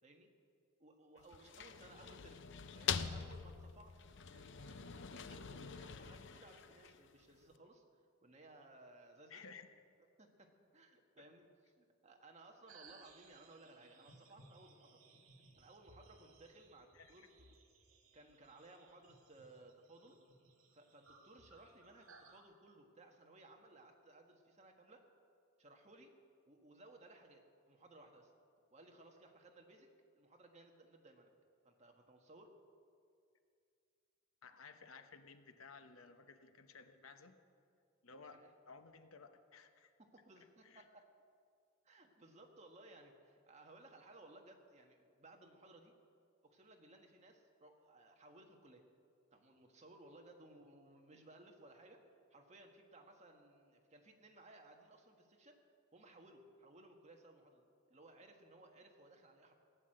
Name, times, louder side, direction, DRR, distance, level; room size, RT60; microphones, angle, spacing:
voice 1, 0.8-2.4 2.7-4.0 4.3-7.8 8.2-9.4 10.2-11.5 11.8-15.0 15.6-17.5 18.1-20.2 20.7-25.1 25.6-26.2 26.5-28.3 28.7-29.9 30.2-31.3 31.6-32.6 38.2-38.5 40.0-41.0 41.8-45.9 46.4-48.8 49.3-52.0 52.3-55.6 55.9-59.6, right 2 dB, 35° right, 2 dB, 1.6 m, -61 dB
sound 1, 1.2-7.2, left 7 dB, 60° left, 0.6 m, -44 dB
voice 2, 9.3-9.7 11.2-11.3 16.9-17.3 34.4-37.4 38.0-39.9 40.4-40.8, left 5 dB, 85° left, 8 dB, 1.0 m, -57 dB
sound 2, 12.7-22.4, right 3 dB, 80° right, 2.1 m, -64 dB
16.5 x 9.9 x 7.7 m, 2.3 s
head